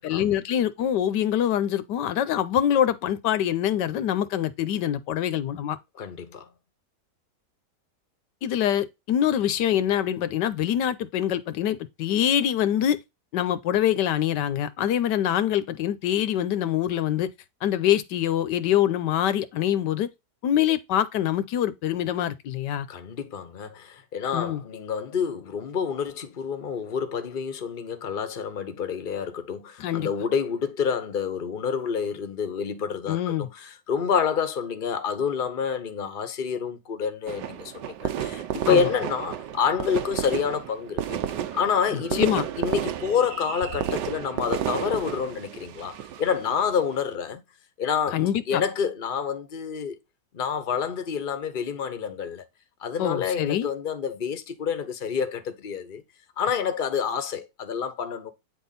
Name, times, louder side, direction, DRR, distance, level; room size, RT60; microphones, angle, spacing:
voice 1, 0.0-5.8 8.4-13.0 13.3-17.3 17.6-20.1 20.4-22.9 24.3-24.6 29.8-30.1 33.1-33.5 38.7-38.9 41.9-42.4 48.1-48.6 53.0-53.7, left 10 dB, 85° left, 1.4 m, -25 dB
voice 2, 6.0-6.5 22.9-41.2 41.5-47.4 47.8-48.2 48.5-50.0 50.3-52.4 52.8-56.0 56.4-58.3, left 7 dB, 35° left, 1.1 m, -28 dB
sound 1, 37.3-47.0, right 10 dB, 85° right, 1.4 m, -32 dB
9.2 x 3.7 x 4.1 m
omnidirectional pair, 1.8 m